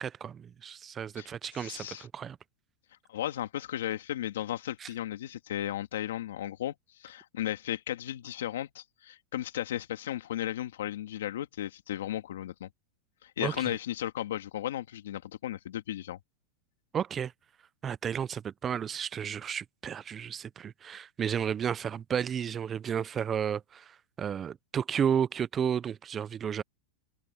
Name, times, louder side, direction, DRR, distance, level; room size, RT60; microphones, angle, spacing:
voice 1, 0.0-2.4 4.8-4.9 13.4-13.8 16.9-17.3 17.8-26.6, right 8 dB, 20° right, 0.3 m, -32 dB
voice 2, 1.2-2.1 3.1-6.7 7.0-12.7 13.2-16.2, left 12 dB, 90° left, 2.2 m, -35 dB
supercardioid pair, 155°, 0 cm